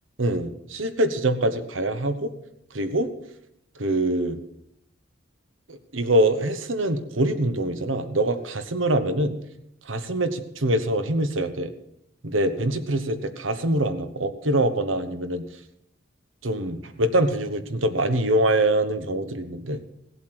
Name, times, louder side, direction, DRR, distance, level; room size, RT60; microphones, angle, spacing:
voice 1, 0.2-2.3 2.7-3.1 3.8-4.4 5.7-9.4 9.8-11.7 12.2-15.4 16.4-19.8, right 1 dB, 85° right, 9 dB, 1.2 m, -24 dB
17.5 x 8.2 x 6.2 m, 0.79 s
head